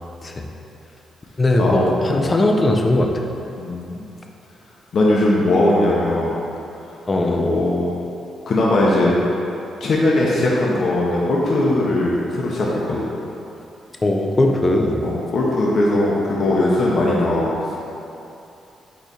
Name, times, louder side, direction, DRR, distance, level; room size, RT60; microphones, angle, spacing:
voice 1, 1.4-3.1 7.1-7.5 14.0-15.1, left 1 dB, 20° left, 2 dB, 0.4 m, -18 dB
voice 2, 3.6-4.1 4.9-6.4 7.3-7.9 8.5-9.2 9.8-13.0 15.0-17.6, left 1 dB, 45° left, -4 dB, 0.8 m, -19 dB
8.1 x 3.1 x 4.1 m, 2.7 s
wide cardioid pair, 175°, 0 cm